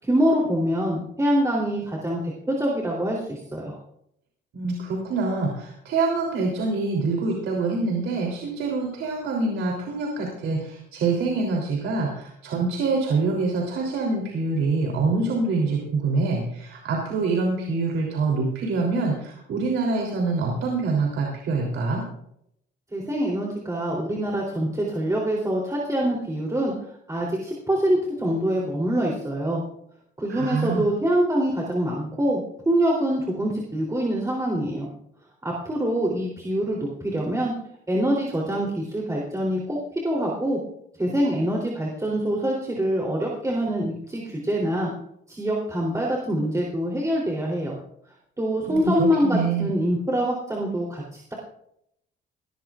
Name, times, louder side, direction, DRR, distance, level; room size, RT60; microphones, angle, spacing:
voice 1, 0.0-3.8 22.9-26.7 27.1-29.6 30.2-34.9 35.4-37.5 37.9-40.6 41.0-44.9 45.3-47.8 48.4-51.3, right 1 dB, 15° right, -3 dB, 3.4 m, -25 dB
voice 2, 4.5-22.0 30.3-30.8 48.7-49.7, right 3 dB, 80° right, -1 dB, 3.4 m, -25 dB
19.5 x 16.0 x 2.5 m, 0.75 s
cardioid pair, 90°, 20 cm